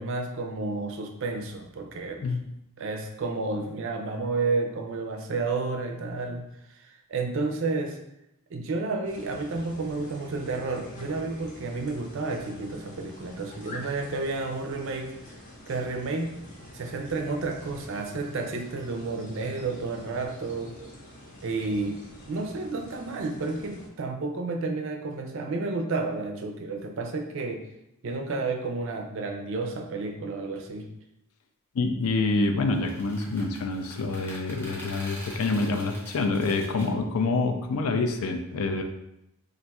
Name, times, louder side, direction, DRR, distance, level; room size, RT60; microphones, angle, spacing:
voice 1, 0.0-2.2 2.8-8.0 8.5-15.2 15.7-16.4 16.7-20.8 21.4-27.7 28.0-30.9, right 3 dB, 55° right, 4 dB, 0.4 m, -31 dB
sound 1, 9.0-23.9, left 1 dB, 35° left, 0.7 m, -46 dB
voice 2, 31.7-38.8, left 3 dB, 70° left, 5 dB, 0.4 m, -27 dB
sound 2, 32.7-36.9, equal, 10° left, 0.8 m, -44 dB
2.5 x 2.3 x 4.0 m, 0.84 s
head